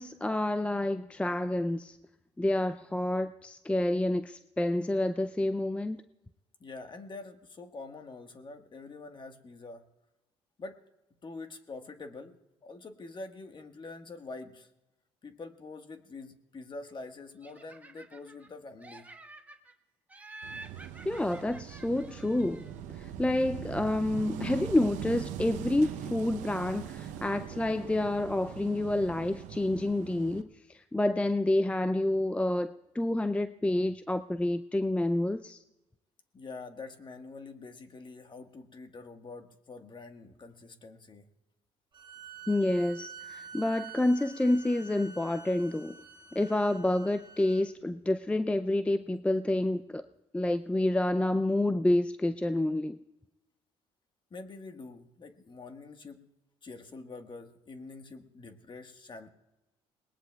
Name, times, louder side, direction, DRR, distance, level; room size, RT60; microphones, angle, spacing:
voice 1, 0.0-2.0 2.4-6.0 21.1-35.6 42.5-46.0 46.3-50.0 50.3-53.0, left 1 dB, 10° left, 0.4 m, -29 dB
voice 2, 6.6-9.9 10.6-10.8 11.2-14.7 15.2-19.1 36.3-41.2 54.3-56.3 56.6-59.3, left 3 dB, 40° left, 1.5 m, -45 dB
Laughter, 17.4-18.5 18.8-19.7 20.1-22.9, right 2 dB, 10° right, 1.5 m, -50 dB
Wind / Waves surf, 20.4-30.4, right 10 dB, 80° right, 0.7 m, -41 dB
sound 1, 41.9-47.6, right 5 dB, 40° right, 2.7 m, -48 dB
27.5 x 19.5 x 2.3 m
supercardioid pair, 70°, 13 cm